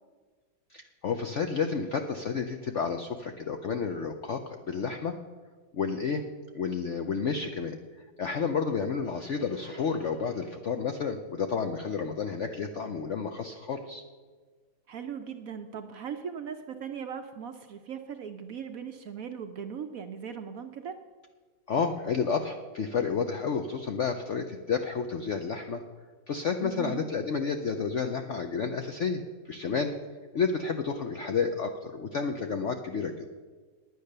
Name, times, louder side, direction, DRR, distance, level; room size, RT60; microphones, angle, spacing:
voice 1, 0.7-5.2 5.7-6.2 6.5-14.0 21.7-25.8 26.3-29.9 30.3-33.3, left 5 dB, 70° left, 6 dB, 0.7 m, -31 dB
voice 2, 14.9-21.0 26.6-27.1, right 7 dB, 65° right, 7 dB, 0.9 m, -39 dB
9.9 x 9.4 x 6.6 m, 1.4 s
omnidirectional pair, 2.0 m